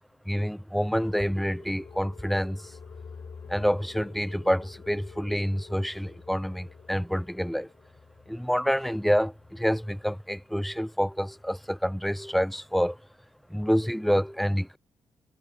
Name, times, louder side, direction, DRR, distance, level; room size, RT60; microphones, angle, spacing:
voice 1, 0.3-2.6 3.5-7.7 8.3-13.0 13.5-14.8, equal, ahead, 1.1 m, -27 dB
sound 1, 1.0-10.4 10.7-10.8 11.1-11.5, left 5 dB, 45° left, 5.8 m, -51 dB
sound 2, 1.5-9.9, left 7 dB, 65° left, 5.4 m, -53 dB
cardioid pair, 70°, 8 cm